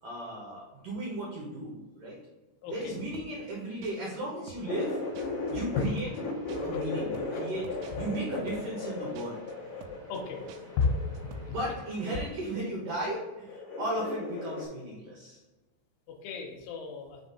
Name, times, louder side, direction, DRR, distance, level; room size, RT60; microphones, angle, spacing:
voice 1, 0.0-2.2 2.7-5.0 5.5-6.1 6.6-7.7 8.0-9.4 11.5-15.4, right 1 dB, 75° right, -4 dB, 1.9 m, -35 dB
voice 2, 2.6-2.9 5.4-5.5 5.8-5.9 6.5-6.7 10.1-10.4 10.8-11.4 16.1-17.2, left 5 dB, 80° left, 1 dB, 3.3 m, -32 dB
sound 1, 2.8-3.5 3.8-4.2 4.5-4.9 5.1-5.5 5.8-6.2 6.5-8.9 9.1-9.5 9.8-10.2 10.5-10.9 11.1-11.4, right 6 dB, 90° right, 3.2 m, -50 dB
sound 2, 4.6-12.2, right 1 dB, 60° right, 1.0 m, -54 dB
sound 3, 4.7-5.8 6.1-11.6 12.6-13.2 13.5-14.7, left 3 dB, 65° left, 2.3 m, -36 dB
7.1 x 3.7 x 4.2 m, 1.2 s
omnidirectional pair, 5.7 m